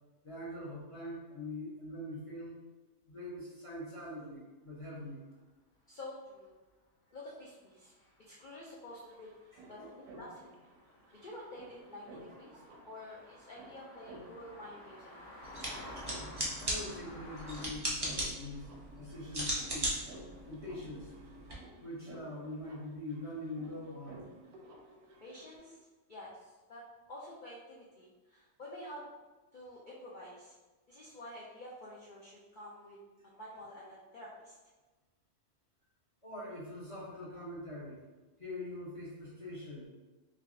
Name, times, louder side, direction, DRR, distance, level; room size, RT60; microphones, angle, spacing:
voice 1, 0.2-2.5 3.1-5.2 9.5-9.9 12.3-12.4 16.6-20.0 20.5-21.1 21.8-24.3 36.2-38.0 38.4-39.9, left 1 dB, 35° left, -7 dB, 0.6 m, -43 dB
sound 1, 4.8-4.9 5.3-5.4 7.9-8.1 8.4-8.5 8.8-17.7, left 1 dB, 60° left, 0.9 m, -52 dB
voice 2, 5.9-6.5 7.1-7.9 8.2-9.3 9.7-9.8 10.1-10.5 11.2-15.3 25.2-26.8 27.1-29.1 29.5-30.5 30.9-33.0 33.2-34.6, left 1 dB, 90° left, -5 dB, 0.4 m, -49 dB
sound 2, 8.5-8.6 8.8-25.6, right 1 dB, 85° right, 1.1 m, -55 dB
sound 3, 15.4-21.5, right 1 dB, 30° right, 0.5 m, -38 dB
3.5 x 3.1 x 2.5 m, 1.2 s
omnidirectional pair, 1.6 m